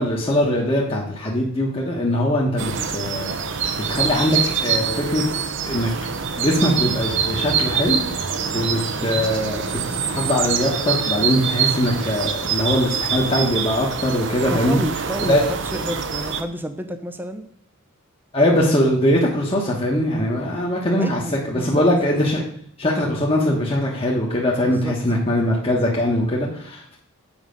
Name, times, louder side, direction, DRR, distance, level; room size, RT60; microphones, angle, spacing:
voice 1, 0.0-3.6 3.9-5.2 5.6-5.9 6.4-8.0 8.5-14.8 15.3-15.4 18.3-22.4 22.8-27.0, left 1 dB, 25° left, -4 dB, 1.2 m, -21 dB
sound 1, 2.6-16.4, right 6 dB, 55° right, 0.7 m, -25 dB
voice 2, 14.5-17.5 21.0-21.8 24.6-24.9, equal, 10° right, 8 dB, 0.5 m, -30 dB
7.3 x 5.4 x 5.2 m, 0.63 s
head